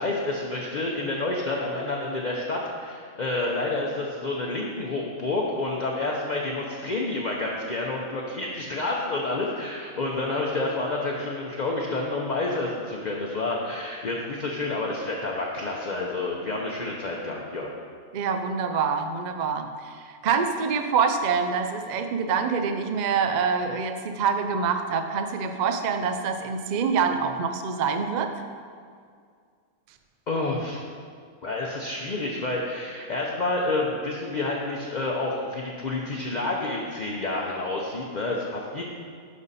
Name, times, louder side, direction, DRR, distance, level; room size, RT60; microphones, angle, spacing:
voice 1, 0.0-17.7 30.3-30.8 31.4-38.9, left 2 dB, 40° left, -2 dB, 0.7 m, -29 dB
voice 2, 18.1-28.3, right 5 dB, 85° right, 7 dB, 0.4 m, -26 dB
11.0 x 5.3 x 4.1 m, 2.1 s
omnidirectional pair, 1.5 m